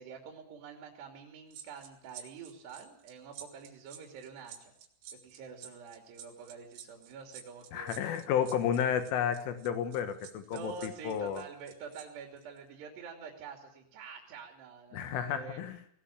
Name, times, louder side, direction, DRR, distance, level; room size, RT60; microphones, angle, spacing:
voice 1, 0.0-4.7 5.2-8.0 10.5-15.6, right 6 dB, 60° right, 2 dB, 4.8 m, -47 dB
sound 1, 1.5-12.1 12.4-12.6, right 9 dB, 80° right, 4.6 m, -50 dB
voice 2, 7.7-11.4 14.9-15.8, left 8 dB, 80° left, 8 dB, 4.1 m, -32 dB
19.0 x 19.0 x 8.7 m, 0.66 s
omnidirectional pair, 5.6 m